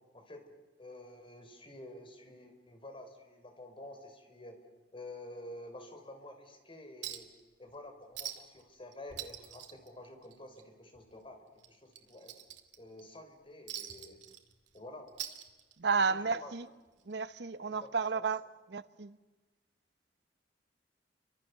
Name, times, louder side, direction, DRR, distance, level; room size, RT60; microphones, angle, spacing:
voice 1, 0.1-0.4 0.8-4.6 4.9-7.3 7.6-12.4 12.8-14.2 14.7-15.1 16.0-16.5 17.7-18.2, left 1 dB, 30° left, 4.0 m, -50 dB
Chink clink, 7.0-7.4 7.7-7.8 8.1-8.6 8.9-10.6 10.9-11.1 11.6-13.0 13.7-14.8 15.1-16.0 17.1-17.2, right 11 dB, 90° right, 2.3 m, -44 dB
voice 2, 15.8-16.7 17.0-18.4 18.7-19.2, right 5 dB, 70° right, 0.9 m, -32 dB
29.5 x 25.0 x 6.8 m
head